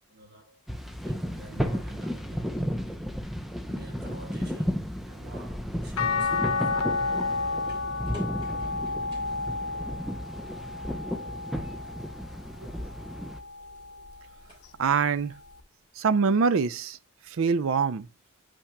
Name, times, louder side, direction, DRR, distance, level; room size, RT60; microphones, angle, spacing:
voice 1, 0.1-0.6 1.0-2.6 3.6-6.7, right 2 dB, 45° right, 1.2 m, -49 dB
sound 1, 0.7-13.4, equal, ahead, 0.5 m, -33 dB
sound 2, 5.0-16.0, left 1 dB, 25° right, 3.4 m, -56 dB
sound 3, 6.0-12.3 12.8-14.2 15.6-15.7, left 4 dB, 85° left, 0.8 m, -31 dB
voice 2, 14.8-15.4 16.0-17.0 17.3-18.1, right 5 dB, 60° right, 0.4 m, -24 dB
8.5 x 5.7 x 2.2 m
head